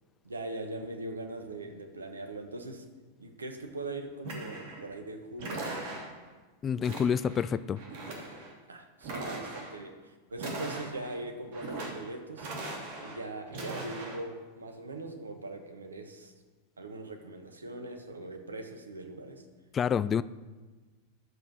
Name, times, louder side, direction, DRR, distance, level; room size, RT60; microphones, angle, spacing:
voice 1, 0.2-2.8 3.2-5.7 8.7-12.5 13.0-16.3 16.8-19.4, right 2 dB, 75° right, 5 dB, 1.4 m, -41 dB
sound 1, 4.2-4.9 5.4-6.3 6.8-7.5 7.8-8.5 9.0-9.8 10.3-11.2 11.5-12.1 12.4-13.2 13.5-14.2, right 2 dB, 50° right, 2.8 m, -39 dB
voice 2, 6.6-7.8 19.7-20.2, left 7 dB, 25° left, 18 dB, 0.3 m, -28 dB
11.5 x 7.6 x 6.3 m, 1.3 s
figure-of-eight pair, 90°, 0 cm